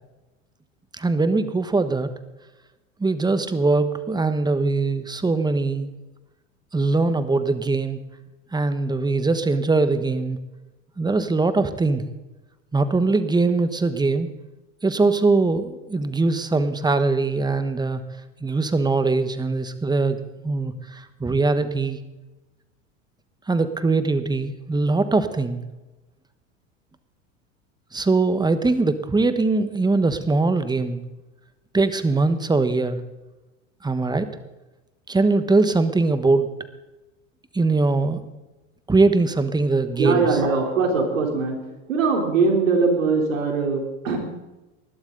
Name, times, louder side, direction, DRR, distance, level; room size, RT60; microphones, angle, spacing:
voice 1, 1.0-2.1 3.0-5.9 6.7-8.0 8.5-10.4 11.0-12.0 12.7-14.3 14.8-18.0 18.4-20.2 20.4-22.0 23.5-25.6 27.9-31.0 31.7-33.0 33.8-34.3 35.1-36.5 37.5-38.3 38.9-40.2, right 3 dB, 10° right, 11 dB, 1.2 m, -21 dB
voice 2, 40.0-41.6 41.9-44.2, right 4 dB, 85° right, 2 dB, 3.7 m, -21 dB
20.0 x 12.0 x 4.0 m, 1.1 s
hypercardioid pair, 90°, 38 cm